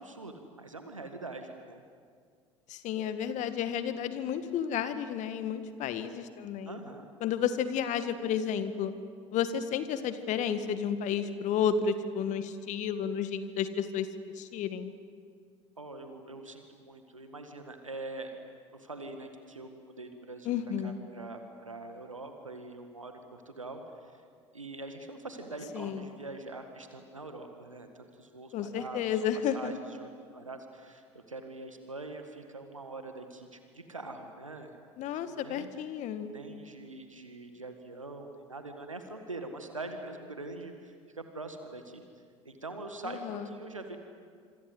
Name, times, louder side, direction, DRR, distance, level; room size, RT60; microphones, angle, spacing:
voice 1, 0.0-1.8 6.7-7.1 15.8-18.4 18.7-20.5 20.8-24.2 24.5-29.2 29.4-34.7 35.1-35.7 36.2-42.1 42.5-44.0, right 2 dB, 90° right, 6 dB, 1.9 m, -43 dB
voice 2, 2.7-6.8 7.2-8.9 9.3-14.1 14.4-14.9 20.5-21.0 25.7-26.1 28.5-29.7 35.0-36.3 43.0-43.5, left 8 dB, 50° left, 11 dB, 1.8 m, -32 dB
26.5 x 25.0 x 8.0 m, 2.1 s
figure-of-eight pair, 65°, 16 cm